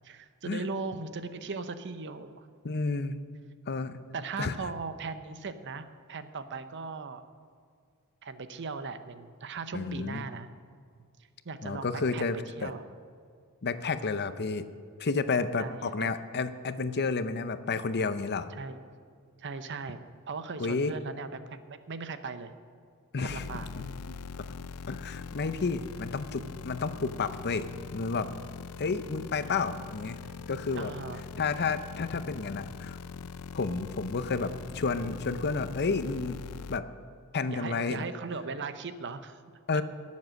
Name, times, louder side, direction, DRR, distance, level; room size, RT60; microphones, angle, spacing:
voice 1, 0.0-2.5 4.1-7.2 8.2-10.5 11.4-12.8 15.6-16.1 18.5-18.8 19.4-20.0 20.3-22.5 23.2-23.7 30.2-30.3 30.7-31.2 37.5-39.4 39.7-39.8, right 4 dB, 55° right, 11 dB, 0.8 m, -38 dB
voice 2, 2.6-3.2 3.7-4.0 4.4-4.5 9.7-10.2 11.6-12.7 13.6-14.6 15.0-18.5 20.6-20.9 23.1-23.5 23.7-24.2 24.9-28.3 28.8-30.9 31.4-33.0 33.5-36.4 36.7-36.8 37.3-38.1 39.7-39.8, left 4 dB, 50° left, 12 dB, 0.6 m, -31 dB
sound 1, 23.3-36.8, left 5 dB, 90° left, 0.4 m, -42 dB
19.5 x 7.4 x 6.4 m, 2.1 s
head